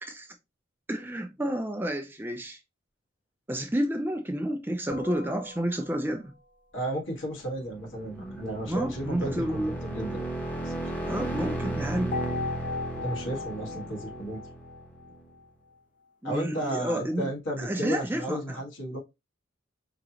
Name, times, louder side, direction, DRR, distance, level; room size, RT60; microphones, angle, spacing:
voice 1, 0.9-2.6 3.5-6.3 8.6-9.7 11.0-12.2 16.2-17.3 17.6-18.6, equal, 10° right, 0.5 m, -30 dB
sound 1, 4.9-6.4 12.1-15.5, left 4 dB, 40° left, 0.7 m, -38 dB
voice 2, 6.7-10.3 10.6-10.7 12.9-14.4 16.2-19.0, right 1 dB, 70° left, 1.7 m, -33 dB
sound 2, 7.5-15.3, right 2 dB, 10° left, 0.9 m, -35 dB
4.9 x 2.9 x 2.9 m
head